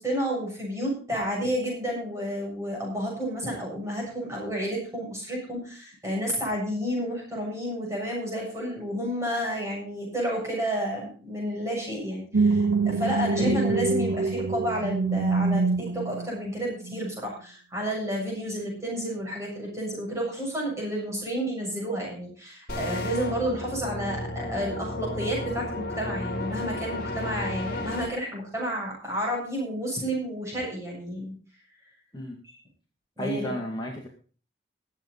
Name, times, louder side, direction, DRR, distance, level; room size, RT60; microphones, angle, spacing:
voice 1, 0.0-31.3 33.2-33.5, equal, 15° right, -3 dB, 7.3 m, -31 dB
sound 1, 12.3-16.3 16.8-17.0, right 4 dB, 75° right, 0.7 m, -25 dB
voice 2, 13.4-13.8 32.1-32.4 33.2-34.1, left 1 dB, 25° left, -1 dB, 2.1 m, -31 dB
sound 2, 22.7-28.1, left 1 dB, 50° left, 2.6 m, -33 dB
22.0 x 7.7 x 4.1 m, 0.38 s
head